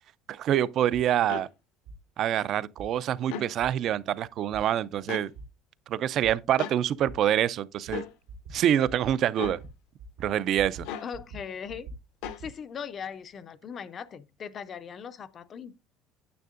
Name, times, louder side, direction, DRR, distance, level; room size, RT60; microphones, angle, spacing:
voice 1, 0.3-1.5 2.2-5.3 5.9-8.0 8.5-9.6 10.2-10.9, right 11 dB, 40° right, 0.3 m, -26 dB
sound 1, 0.9-1.1 1.9-2.0 2.8-2.9 3.6-3.7 4.5-4.6 5.3-5.5 6.2-6.3 7.1-7.2 7.9-8.0 8.3-8.6 8.9-9.1 9.4-9.7 10.0-10.9 11.1-12.5, right 3 dB, 85° right, 1.7 m, -43 dB
sound 2, 1.3-1.5 3.2-3.5 5.1-5.3 6.6-6.8 7.9-8.1 9.3-9.6 10.8-11.1 12.2-12.4, left 8 dB, 70° left, 0.8 m, -36 dB
voice 2, 11.0-11.9 12.4-15.8, left 7 dB, 30° left, 0.5 m, -39 dB
9.2 x 7.4 x 2.5 m
cardioid pair, 165°, 0 cm